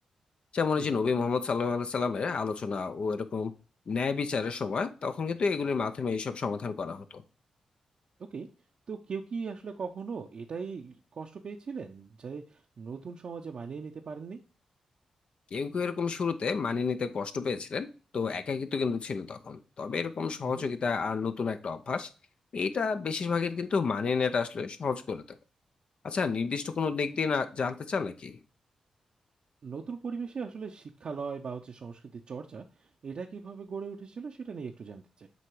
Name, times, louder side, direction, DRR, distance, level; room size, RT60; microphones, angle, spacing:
voice 1, 0.5-3.5 3.9-7.2 15.5-17.9 18.1-22.1 22.5-25.2 26.0-28.4, left 5 dB, 60° left, 9 dB, 0.6 m, -30 dB
voice 2, 8.9-14.4 20.4-20.7 29.6-35.3, right 5 dB, 60° right, 1 dB, 0.6 m, -39 dB
7.8 x 2.9 x 4.6 m, 0.35 s
supercardioid pair, 50°, 2 cm